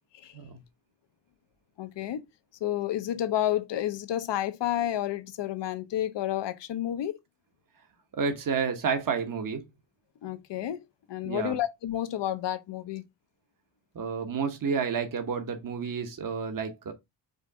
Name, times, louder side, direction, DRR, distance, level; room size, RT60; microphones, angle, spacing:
voice 1, 1.8-2.3 2.6-7.2 10.2-13.0, left 12 dB, 70° left, 0.7 m, -30 dB
voice 2, 8.1-9.6 11.2-11.6 13.9-16.9, right 5 dB, 45° right, 1.0 m, -30 dB
5.2 x 2.5 x 3.5 m
cardioid pair, 80°, 45 cm